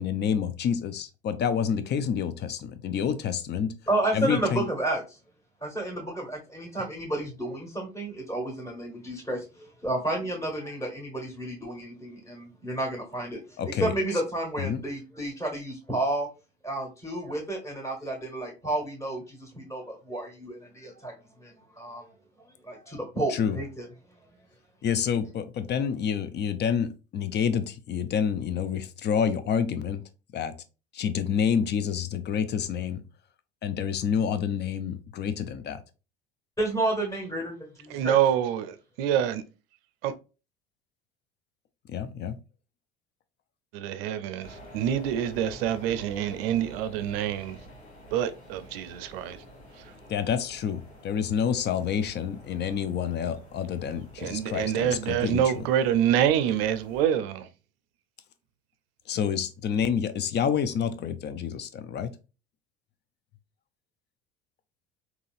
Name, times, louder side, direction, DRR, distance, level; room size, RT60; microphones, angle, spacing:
voice 1, 0.0-3.7 4.1-4.6 13.6-13.9 14.6-14.8 23.3-23.6 24.8-30.0 30.3-30.5 30.9-33.0 33.6-35.8 41.9-42.4 50.1-55.5 59.1-62.1, left 7 dB, 30° left, 0.5 m, -28 dB
voice 2, 3.9-5.2 5.6-16.3 16.6-21.1 21.4-22.1 22.6-23.9 36.6-38.2, right 1 dB, 10° left, 1.5 m, -31 dB
voice 3, 37.9-39.4 40.0-40.1 43.7-47.6 48.1-49.4 54.2-57.5, right 10 dB, 60° right, 0.5 m, -26 dB
sound 1, 44.4-57.1, equal, 80° left, 1.3 m, -49 dB
3.8 x 2.9 x 2.5 m
figure-of-eight pair, 65°, 33 cm